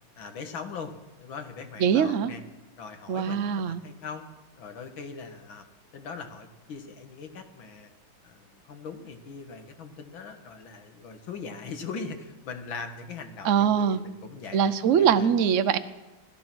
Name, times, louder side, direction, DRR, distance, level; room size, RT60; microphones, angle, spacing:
voice 1, 0.2-0.9 1.2-2.4 2.8-4.3 4.6-5.7 5.9-7.9 8.2-14.6 15.0-15.3, left 5 dB, 80° left, 7 dB, 2.3 m, -40 dB
voice 2, 1.8-2.3 3.1-3.8 13.4-14.0 14.5-15.8, right 7 dB, 60° right, 12 dB, 0.8 m, -22 dB
17.0 x 13.5 x 6.1 m, 1.1 s
omnidirectional pair, 2.2 m